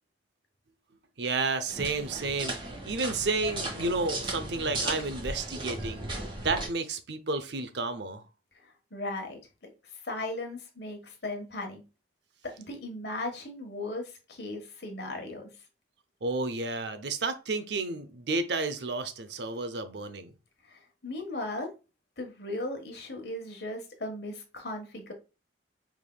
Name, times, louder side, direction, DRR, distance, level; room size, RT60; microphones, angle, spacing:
voice 1, 1.2-6.1 6.4-8.2 16.2-20.3, right 3 dB, 70° right, 0.6 m, -31 dB
sound 1, 1.7-6.7, right 2 dB, 25° right, 1.2 m, -36 dB
voice 2, 8.6-9.4 10.0-11.8 12.4-15.5 20.7-21.7 22.2-25.1, left 2 dB, 65° left, 1.3 m, -37 dB
4.9 x 3.6 x 2.2 m
head